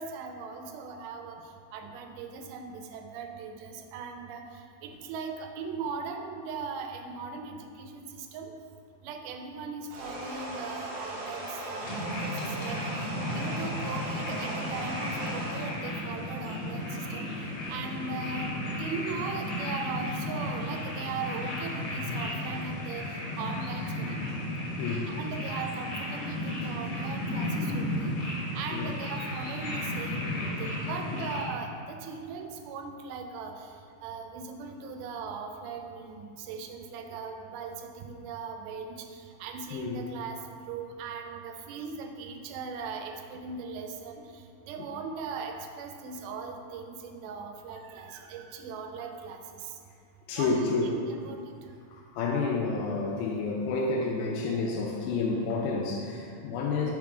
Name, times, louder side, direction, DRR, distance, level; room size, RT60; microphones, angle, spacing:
voice 1, 0.0-1.4 1.7-4.4 4.8-8.5 9.0-17.3 17.7-18.5 18.8-24.2 25.1-28.2 28.5-33.7 34.0-40.4 40.7-44.2 44.6-49.8 50.4-51.5, right 5 dB, 85° right, 4 dB, 2.4 m, -39 dB
sound 1, 9.9-15.8, right 1 dB, 65° right, 1.8 m, -38 dB
sound 2, 11.8-31.4, left 1 dB, 70° left, 1.3 m, -34 dB
voice 2, 24.8-25.2 28.7-28.9 30.4-30.6 31.1-31.2 39.7-40.0 44.8-44.9 50.3-51.0 51.9-56.9, left 3 dB, 85° left, -1 dB, 2.4 m, -30 dB
6.2 x 3.7 x 4.8 m, 2.4 s
omnidirectional pair, 4.3 m